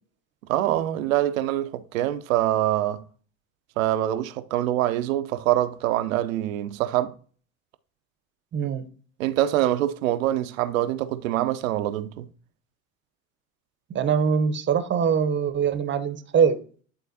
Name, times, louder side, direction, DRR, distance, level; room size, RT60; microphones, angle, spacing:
voice 1, 0.5-3.0 3.8-7.1 9.2-12.3, right 13 dB, 70° right, 0.7 m, -24 dB
voice 2, 8.5-8.8 13.9-16.6, right 7 dB, 25° right, 0.8 m, -23 dB
11.0 x 3.7 x 2.7 m
figure-of-eight pair, 70°, 42 cm